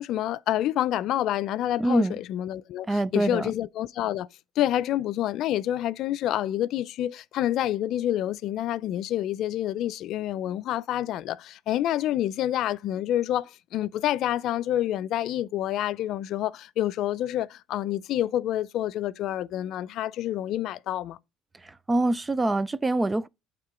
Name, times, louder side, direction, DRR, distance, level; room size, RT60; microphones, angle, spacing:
voice 1, 0.0-4.3 4.6-21.2, left 12 dB, 55° left, 0.4 m, -28 dB
voice 2, 1.8-2.1 2.9-3.5 21.6-23.3, right 2 dB, 15° right, 0.4 m, -25 dB
8.7 x 3.7 x 4.9 m
cardioid pair, 120°, 0 cm